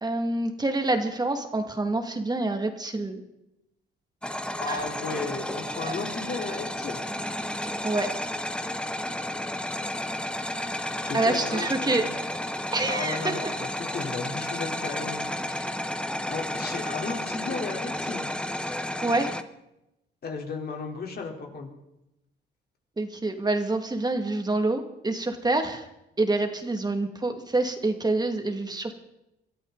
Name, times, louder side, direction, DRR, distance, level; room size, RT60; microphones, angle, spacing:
voice 1, 0.0-3.2 4.7-4.8 5.8-5.9 7.8-8.1 11.1-12.3 12.7-13.5 15.5-15.7 19.0-19.3 23.0-25.9 26.2-28.9, right 2 dB, 20° right, 5 dB, 2.3 m, -27 dB
sound 1, 4.2-19.4, left 1 dB, 5° left, 1.1 m, -32 dB
voice 2, 4.6-7.0 11.0-12.1 12.9-15.2 16.3-18.3 20.2-21.7, left 4 dB, 50° left, 1 dB, 3.9 m, -34 dB
25.5 x 13.5 x 4.1 m, 0.88 s
cardioid pair, 90°, 20 cm